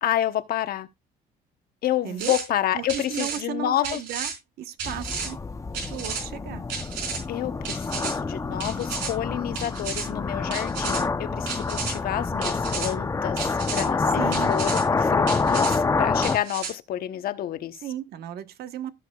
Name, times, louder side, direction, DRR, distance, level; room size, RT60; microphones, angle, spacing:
voice 1, 0.0-0.9 1.8-4.0 7.3-14.2 14.5-17.8, left 12 dB, 60° left, 1.0 m, -29 dB
voice 2, 2.0-2.4 2.7-4.3 4.6-5.4 5.9-6.6 14.2-14.5 17.8-18.9, right 11 dB, 70° right, 1.2 m, -34 dB
sound 1, 2.2-2.4 2.9-3.4 3.8-4.3 4.8-5.3 5.7-6.2 6.7-7.2 7.6-8.1 8.6-9.1 9.5-10.0 10.5-11.0 11.5-11.9 12.4-12.9 13.4-13.8 14.3-14.8 15.3-15.8 16.2-16.7, right 6 dB, 85° right, 4.5 m, -32 dB
sound 2, 4.8-16.4, left 4 dB, 20° left, 0.7 m, -27 dB
16.0 x 6.6 x 2.4 m
cardioid pair, 110°, 17 cm